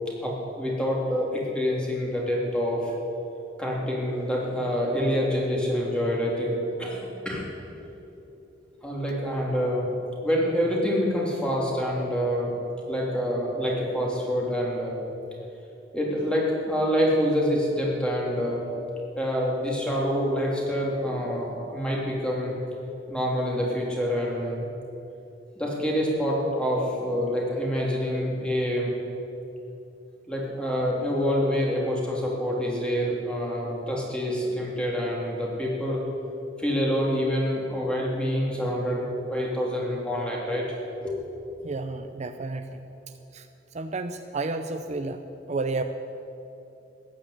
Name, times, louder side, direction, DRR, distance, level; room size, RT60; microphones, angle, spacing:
voice 1, 0.2-2.9 3.6-7.5 8.8-9.9 10.2-12.5 12.9-14.9 15.9-18.6 19.1-22.5 23.1-24.7 25.6-28.9 30.3-36.0 36.6-41.1, equal, 5° left, -3 dB, 3.2 m, -26 dB
voice 2, 41.6-42.9 43.3-43.5 43.7-45.8, right 3 dB, 40° right, 8 dB, 0.6 m, -31 dB
15.5 x 10.5 x 8.4 m, 2.8 s
head